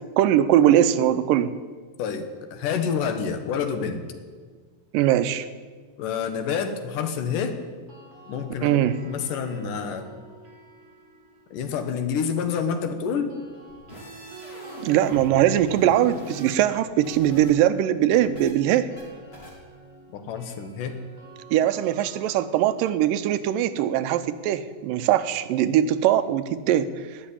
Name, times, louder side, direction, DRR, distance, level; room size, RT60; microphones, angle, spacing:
voice 1, 0.0-1.6 4.9-5.5 8.6-9.0 14.8-18.9 21.5-26.9, right 11 dB, 90° right, 12 dB, 2.4 m, -21 dB
voice 2, 2.0-4.0 6.0-7.6 8.3-10.2 11.5-13.4 20.1-21.0, left 6 dB, 75° left, 8 dB, 2.8 m, -28 dB
sound 1, 7.7-11.9 13.1-25.0, right 3 dB, 45° right, 3.4 m, -48 dB
sound 2, 13.7-15.3 15.6-17.5 17.8-18.5 19.0-19.1 19.3-19.5, left 1 dB, 20° left, 3.2 m, -42 dB
18.5 x 6.5 x 9.9 m, 1.5 s
omnidirectional pair, 3.8 m